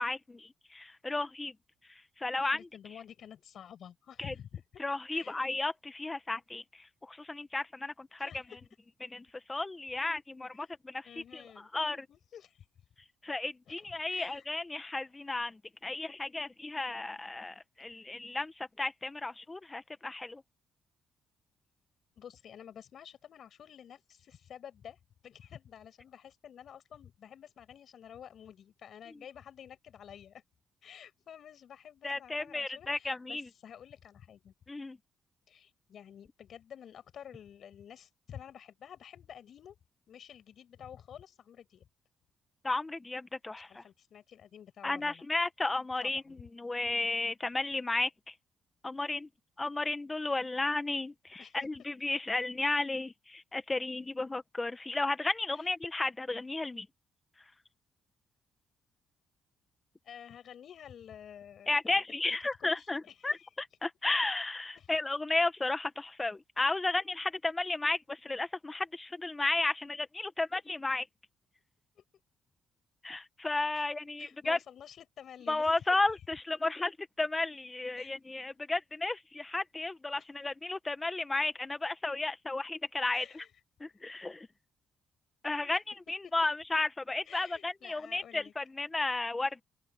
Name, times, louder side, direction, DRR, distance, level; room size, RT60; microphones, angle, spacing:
voice 1, 0.0-1.5 2.2-2.6 4.2-4.3 4.8-6.6 7.0-8.3 9.0-11.0 11.3-11.4 11.7-12.1 13.2-20.4 32.0-33.5 34.7-35.0 42.6-43.8 44.8-48.3 48.8-49.3 49.6-56.9 61.7-71.0 73.0-74.6 75.5-83.2 83.8-84.5 85.4-89.6, left 2 dB, 20° left, 1.5 m, -33 dB
voice 2, 2.4-4.8 5.1-5.5 8.2-8.6 10.5-10.8 11.0-11.7 12.1-12.7 13.7-14.5 17.9-18.0 22.2-30.4 30.8-34.5 35.5-39.8 40.1-41.9 43.6-45.2 46.0-46.4 51.4-51.7 55.5-55.7 60.0-62.0 62.6-63.5 64.7-64.9 72.0-72.1 73.7-73.9 74.2-76.2 78.0-78.2 80.2-80.3 83.1-83.5 83.9-84.0 85.6-85.8 86.2-86.3 87.3-88.5, left 9 dB, 60° left, 7.5 m, -51 dB
open air
cardioid pair, 90°, 0 cm